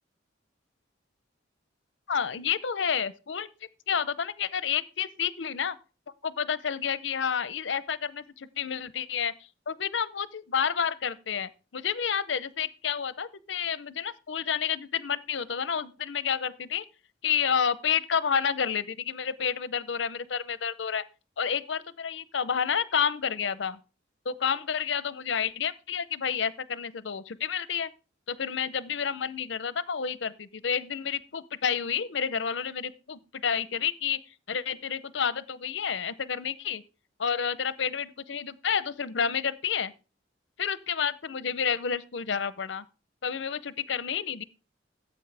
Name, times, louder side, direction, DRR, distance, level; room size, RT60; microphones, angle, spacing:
voice 1, 2.1-3.5 3.9-5.8 6.2-9.3 9.7-16.8 17.2-21.0 21.4-23.8 24.3-27.9 28.3-34.2 34.5-36.8 37.2-39.9 40.6-42.8 43.2-44.4, left 7 dB, 70° left, 0.6 m, -30 dB
13.5 x 8.4 x 3.4 m
head